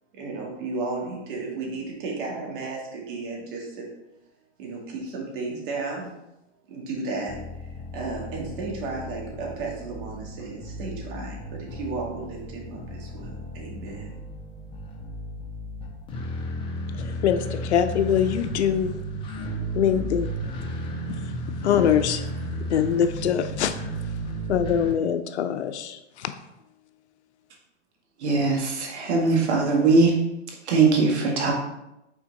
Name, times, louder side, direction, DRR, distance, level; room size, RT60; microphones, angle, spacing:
voice 1, 0.2-3.9 4.6-6.1 6.7-14.1, right 3 dB, 45° right, 2.2 m, -34 dB
sound 1, 7.3-24.9, right 1 dB, 15° left, 0.7 m, -34 dB
voice 2, 17.7-18.9 19.7-20.3 21.6-22.2 22.7-23.7 24.5-26.0, left 9 dB, 70° left, 0.7 m, -22 dB
voice 3, 28.2-30.2 30.7-31.5, right 4 dB, 70° right, 2.0 m, -20 dB
6.0 x 4.5 x 4.0 m
hypercardioid pair, 140°, 35 cm